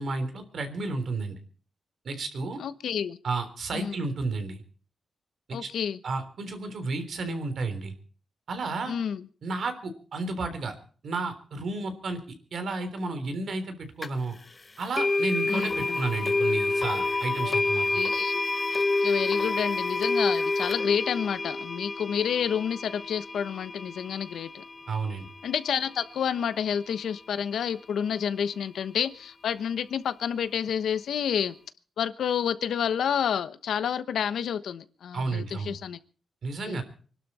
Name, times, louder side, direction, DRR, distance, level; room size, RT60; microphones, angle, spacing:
voice 1, 0.0-1.3 2.0-2.6 3.2-4.6 5.5-5.7 6.0-7.9 8.5-8.9 9.4-10.7 11.0-12.2 12.5-14.3 14.8-18.0 24.9-25.3 35.1-35.8 36.4-36.8, right 3 dB, 60° right, 3.5 m, -32 dB
voice 2, 2.6-3.2 3.7-3.9 5.5-6.0 8.9-9.2 15.5-16.0 17.4-17.6 17.9-18.4 18.7-24.6 25.4-31.5 32.0-36.0 36.6-36.8, left 8 dB, 85° left, 1.1 m, -29 dB
sound 1, 14.0-14.1 15.0-25.9, left 3 dB, 30° left, 0.9 m, -28 dB
25.5 x 12.0 x 4.3 m
wide cardioid pair, 120°, 0 cm